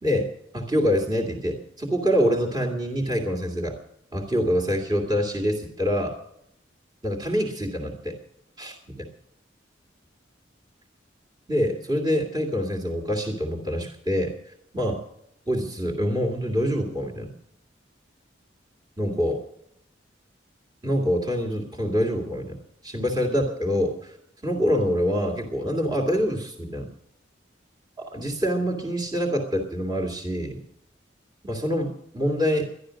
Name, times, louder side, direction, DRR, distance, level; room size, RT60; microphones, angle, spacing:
voice 1, 0.5-3.8 4.1-6.2 7.0-8.1 8.6-9.0 11.5-14.3 14.7-15.0 15.5-17.3 19.0-19.4 20.8-22.6 22.8-24.1 24.4-26.9 28.0-30.6 31.4-32.7, equal, 20° right, 0 dB, 2.3 m, -25 dB
13.0 x 11.5 x 6.3 m, 0.75 s
head